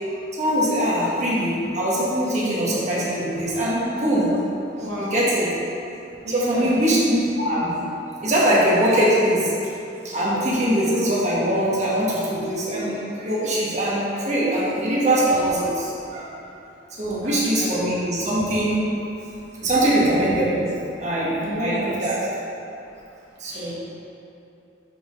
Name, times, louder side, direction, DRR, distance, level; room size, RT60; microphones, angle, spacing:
voice 1, 0.3-4.6 5.0-5.5 6.3-7.9 8.2-9.5 10.0-16.3 17.0-18.9 19.6-20.7 21.0-22.1 23.4-23.7, right 1 dB, 40° right, -7 dB, 1.6 m, -22 dB
voice 2, 4.8-5.2 6.2-6.8 17.2-17.9 21.4-22.1 23.5-23.7, equal, 85° right, -5 dB, 1.0 m, -32 dB
6.2 x 4.4 x 5.3 m, 2.7 s
head